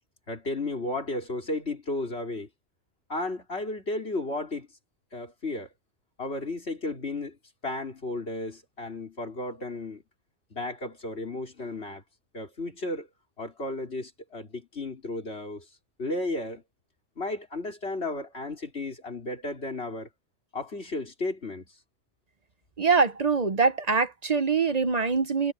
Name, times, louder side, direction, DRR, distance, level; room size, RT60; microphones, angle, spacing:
voice 1, 0.3-2.5 3.1-4.7 5.1-5.7 6.2-7.4 7.6-10.0 10.5-12.0 12.3-13.1 13.4-15.7 16.0-16.6 17.2-20.1 20.5-21.7, left 2 dB, 85° left, 4.3 m, -33 dB
voice 2, 22.8-25.5, right 4 dB, 40° right, 0.9 m, -24 dB
omnidirectional pair, 1.1 m